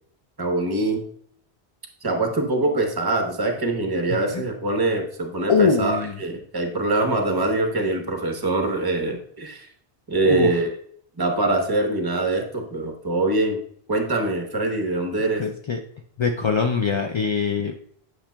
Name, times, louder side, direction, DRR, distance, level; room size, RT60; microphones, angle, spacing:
voice 1, 0.4-1.0 2.0-9.7 10.1-10.7 11.2-13.6 13.9-15.5, right 2 dB, 25° right, 3 dB, 1.0 m, -23 dB
voice 2, 5.5-6.1 10.2-10.5 15.4-15.8 16.2-17.7, left 5 dB, 50° left, 4 dB, 0.3 m, -22 dB
8.7 x 6.0 x 2.2 m, 0.62 s
omnidirectional pair, 1.0 m